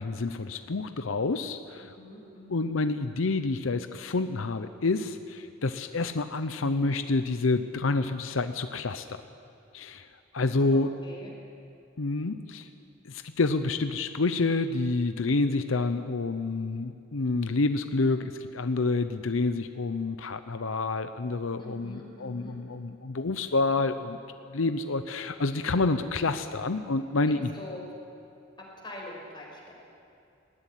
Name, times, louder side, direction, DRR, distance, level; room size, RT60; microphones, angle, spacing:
voice 1, 0.0-2.0 2.5-9.2 9.7-10.1 10.3-10.9 12.0-12.7 13.1-24.2 24.5-27.5, left 3 dB, 90° left, 10 dB, 0.7 m, -28 dB
voice 2, 1.8-2.7 10.7-11.3 21.6-22.6 27.3-27.8 28.6-29.7, left 1 dB, 25° left, -2 dB, 5.3 m, -44 dB
19.0 x 15.0 x 10.0 m, 2.6 s
head